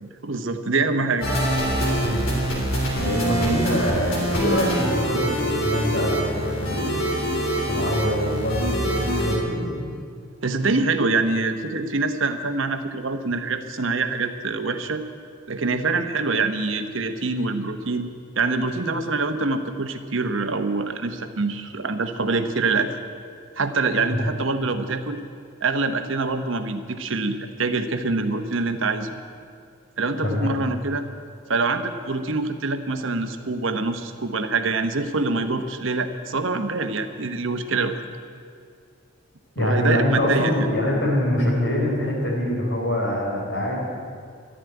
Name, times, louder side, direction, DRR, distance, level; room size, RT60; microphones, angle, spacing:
voice 1, 0.0-1.3 10.4-15.0 15.5-18.1 18.4-22.9 23.6-25.2 25.6-29.1 30.0-31.0 31.5-38.1 39.6-40.7, right 3 dB, 70° right, 8 dB, 1.0 m, -25 dB
sound 1, 1.2-9.4, right 1 dB, 75° left, 3.3 m, -24 dB
voice 2, 3.0-7.1 7.7-9.8 24.1-24.2 30.2-30.5 39.6-43.8, left 1 dB, 55° left, -2 dB, 4.2 m, -24 dB
11.5 x 11.5 x 9.3 m, 2.3 s
head